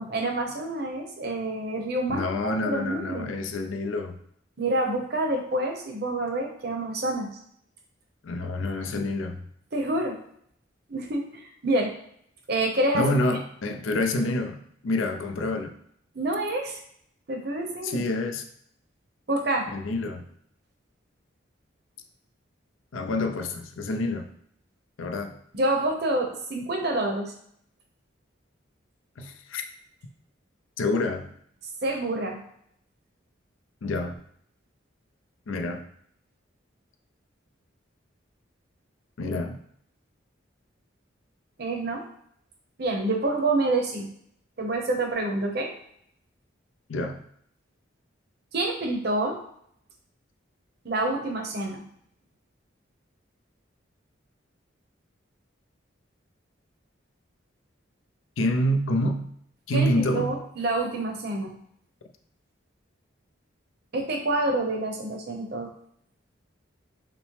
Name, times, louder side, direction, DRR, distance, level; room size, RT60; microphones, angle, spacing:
voice 1, 0.0-3.3 4.6-7.3 9.7-10.2 10.9-11.9 12.5-13.1 16.1-16.8 17.3-18.0 19.3-19.7 25.5-27.3 31.8-32.4 41.6-42.0 42.8-44.1 44.6-45.7 48.5-49.4 50.8-51.8 59.7-61.5 63.9-65.7, right 2 dB, 55° right, 2 dB, 0.8 m, -27 dB
voice 2, 2.1-4.2 8.2-9.4 12.9-15.7 17.8-18.4 19.7-20.2 22.9-24.3 25.0-25.4 29.2-29.6 30.8-31.3 33.8-34.1 35.5-35.9 39.2-39.6 46.9-47.2 58.4-59.3 59.7-60.4, left 1 dB, 80° left, 5 dB, 0.5 m, -27 dB
5.9 x 2.0 x 3.1 m, 0.68 s
head